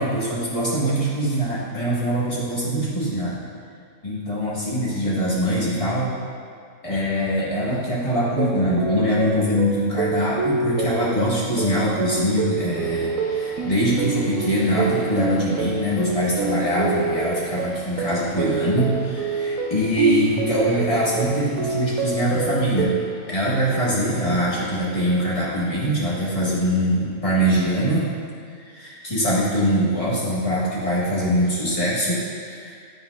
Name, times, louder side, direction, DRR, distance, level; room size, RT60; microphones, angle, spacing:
voice 1, 0.0-3.4 4.0-6.1 6.8-22.9 23.3-28.1 28.6-32.7, equal, 25° left, -7 dB, 1.4 m, -23 dB
sound 1, 8.3-23.1, right 4 dB, 75° right, 1.0 m, -27 dB
sound 2, 12.8-27.6, left 3 dB, 60° left, 0.7 m, -44 dB
8.5 x 5.8 x 2.4 m, 2.1 s
omnidirectional pair, 1.5 m